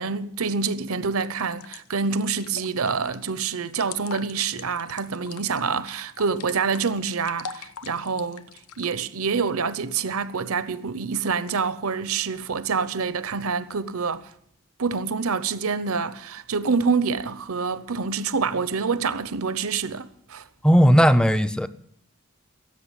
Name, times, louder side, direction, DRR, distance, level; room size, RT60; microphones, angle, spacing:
voice 1, 0.0-8.4 8.8-14.3 14.8-20.4, right 5 dB, 75° right, 0.8 m, -26 dB
sound 1, 1.2-8.9, left 6 dB, 90° left, 0.7 m, -42 dB
voice 2, 20.6-21.7, equal, 5° left, 0.5 m, -16 dB
16.5 x 7.8 x 10.0 m
head